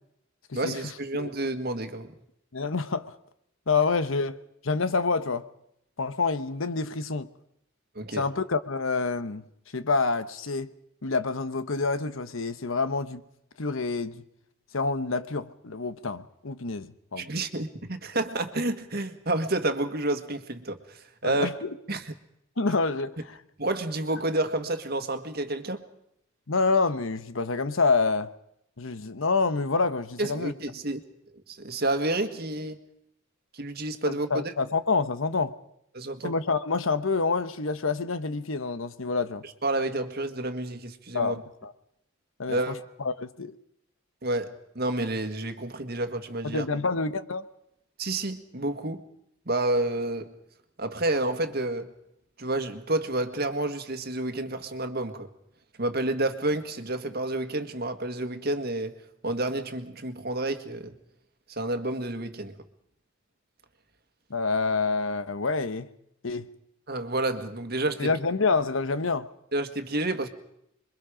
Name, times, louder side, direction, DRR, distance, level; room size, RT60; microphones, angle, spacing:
voice 1, 0.5-2.1 8.0-8.3 17.2-21.5 21.9-22.1 23.6-25.8 30.2-31.0 31.5-32.8 33.5-34.5 35.9-36.3 39.6-41.4 42.5-42.8 44.2-46.6 48.0-49.0 49.5-50.3 50.8-51.9 52.4-55.3 55.8-59.0 59.2-61.0 61.5-62.5 66.9-68.1 69.5-70.3, right 2 dB, 50° right, 1.8 m, -29 dB
voice 2, 2.5-3.2 3.7-4.4 4.6-5.5 6.0-7.3 8.1-9.4 9.7-10.7 11.0-13.2 13.6-14.2 14.7-17.2 21.2-21.7 22.6-23.4 26.5-28.3 28.8-30.5 34.1-35.5 36.2-39.4 41.1-41.7 42.4-43.6 46.4-47.4 64.3-65.9 66.2-66.5 68.0-69.3, left 4 dB, 75° left, 1.1 m, -27 dB
27.0 x 23.0 x 5.1 m
head